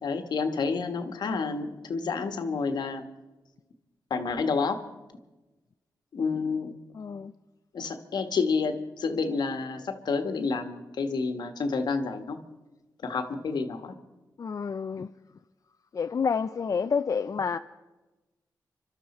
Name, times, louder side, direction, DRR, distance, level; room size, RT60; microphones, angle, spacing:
voice 1, 0.0-3.0 4.1-4.8 6.1-6.7 7.7-12.4 13.0-13.9, left 4 dB, 75° left, 1.4 m, -29 dB
voice 2, 6.9-7.3 14.4-15.1 15.9-17.6, left 6 dB, 50° left, 0.5 m, -29 dB
25.5 x 12.5 x 4.3 m
cardioid pair, 65°, 7 cm